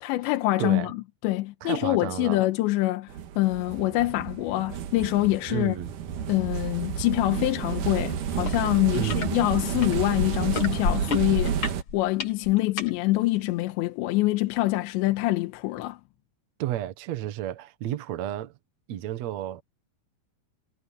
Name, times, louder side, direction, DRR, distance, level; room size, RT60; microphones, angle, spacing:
voice 1, 0.0-5.8 6.3-16.0, left 18 dB, 85° left, 3.1 m, -25 dB
voice 2, 0.6-0.9 1.6-2.4 5.5-5.9 8.9-9.4 16.6-18.5 18.9-19.6, right 12 dB, 85° right, 1.5 m, -32 dB
sound 1, 3.1-11.8, right 8 dB, 60° right, 2.4 m, -31 dB
sound 2, 8.4-8.6 8.9-9.3 9.8-12.9 13.6-13.7, left 4 dB, 45° left, 2.0 m, -30 dB
omnidirectional pair, 5.2 m